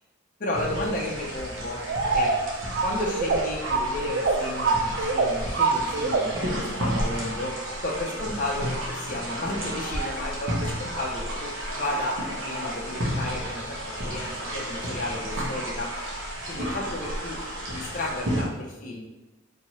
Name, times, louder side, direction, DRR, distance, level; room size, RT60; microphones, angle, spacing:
voice 1, 0.4-1.9 2.1-2.3 2.8-13.8 14.0-15.9 16.5-17.4 17.7-19.0, left 1 dB, 40° left, -3 dB, 0.6 m, -33 dB
sound 1, 0.5-18.4, equal, 80° right, 0.9 m, -32 dB
sound 2, 1.8-6.5 9.8-10.1, right 4 dB, 55° right, 0.4 m, -26 dB
4.2 x 2.7 x 3.0 m, 1.1 s
head